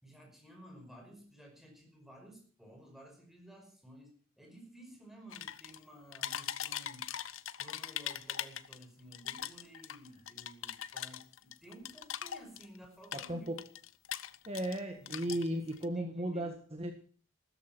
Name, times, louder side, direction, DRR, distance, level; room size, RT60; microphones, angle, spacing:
voice 1, 0.0-7.1 7.6-13.5 15.0-16.8, right 1 dB, ahead, 2 dB, 5.5 m, -55 dB
sound 1, 5.3-5.8 6.1-8.8 9.1-12.8 13.0-14.8 15.1-15.8, left 10 dB, 85° left, 0.9 m, -41 dB
voice 2, 13.1-13.6 14.5-16.9, right 1 dB, 30° right, 5 dB, 1.8 m, -36 dB
15.5 x 13.5 x 6.2 m, 0.41 s
head